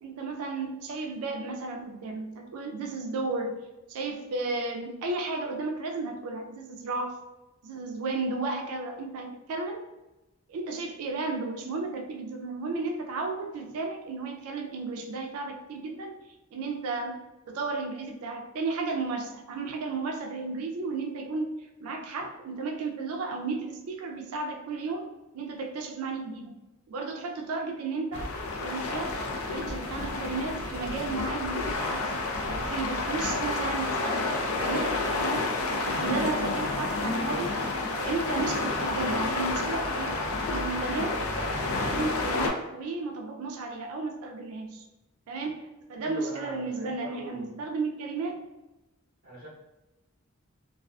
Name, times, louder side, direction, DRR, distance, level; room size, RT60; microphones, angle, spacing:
voice 1, 0.0-7.2 7.6-9.9 10.5-26.6 26.9-29.2 29.5-37.6 37.9-41.2 41.7-44.9 45.3-48.4, right 3 dB, 90° right, 2 dB, 0.4 m, -34 dB
sound 1, 28.1-42.5, left 3 dB, 70° left, 0.4 m, -30 dB
voice 2, 46.0-47.6 49.2-49.5, right 1 dB, 50° right, -7 dB, 0.8 m, -42 dB
2.4 x 2.3 x 2.2 m, 1.0 s
head